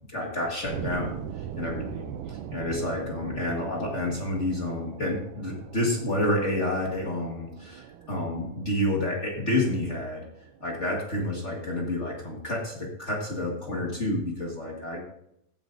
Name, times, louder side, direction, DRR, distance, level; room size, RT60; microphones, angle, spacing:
voice 1, 0.1-10.2 10.6-15.0, left 1 dB, 35° left, -2 dB, 1.1 m, -29 dB
sound 1, 0.7-11.4, right 9 dB, 80° right, 2.1 m, -41 dB
15.5 x 9.8 x 2.7 m, 0.77 s
omnidirectional pair, 3.7 m